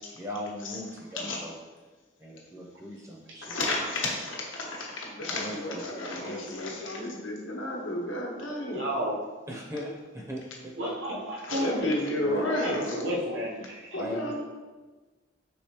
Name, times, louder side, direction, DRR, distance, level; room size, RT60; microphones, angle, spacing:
voice 1, 0.2-1.5 2.2-3.6 5.3-6.5 9.5-10.7 12.3-12.4 13.9-14.3, equal, 15° right, -2 dB, 0.5 m, -39 dB
voice 2, 3.4-8.8 11.4-13.0 13.9-14.4, left 1 dB, 90° left, -1 dB, 1.0 m, -32 dB
voice 3, 8.7-9.2 10.8-11.7 12.4-14.0, equal, 80° right, -4 dB, 0.9 m, -32 dB
4.7 x 3.7 x 2.9 m, 1.3 s
head